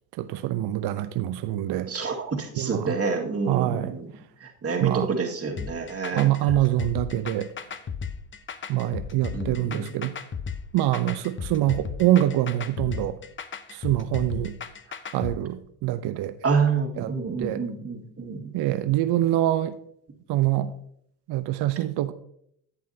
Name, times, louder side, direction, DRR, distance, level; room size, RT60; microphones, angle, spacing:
voice 1, 0.2-1.9 2.5-3.0 3.5-4.0 4.8-5.1 6.1-7.5 8.7-10.2 10.7-13.2 13.7-14.6 15.1-16.4 17.0-17.1 17.4-17.6 18.5-19.8 20.3-20.7 21.3-22.1, right 14 dB, 50° right, 0.7 m, -25 dB
voice 2, 1.9-4.1 4.4-6.3 9.3-9.9 16.4-18.5, right 5 dB, 30° right, 1.9 m, -28 dB
sound 1, 5.6-15.4, left 6 dB, 25° left, 0.8 m, -35 dB
11.0 x 8.4 x 2.8 m
hypercardioid pair, 70°, 50 cm